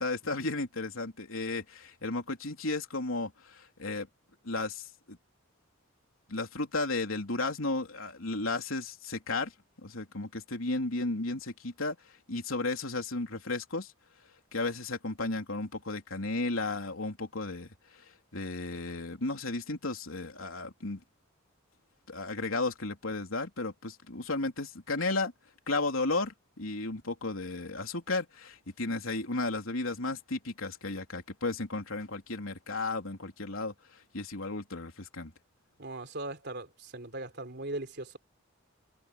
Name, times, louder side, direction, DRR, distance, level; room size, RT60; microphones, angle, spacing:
voice 1, 0.0-4.1 4.4-4.9 6.3-9.5 9.8-12.0 12.3-13.9 14.5-17.7 18.3-21.0 22.1-25.3 25.7-33.7 34.1-35.3, left 2 dB, 85° left, 3.4 m, -34 dB
voice 2, 35.8-38.2, right 2 dB, 55° right, 3.5 m, -39 dB
head